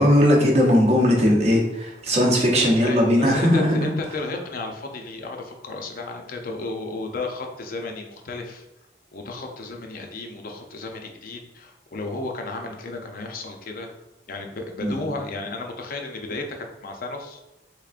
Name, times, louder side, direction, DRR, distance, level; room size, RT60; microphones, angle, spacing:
voice 1, 0.0-3.9 14.8-15.0, equal, 40° right, -1 dB, 0.7 m, -18 dB
voice 2, 2.6-8.6 9.1-13.9 14.3-17.4, left 3 dB, 55° left, 3 dB, 0.5 m, -33 dB
3.5 x 3.4 x 2.4 m, 0.98 s
head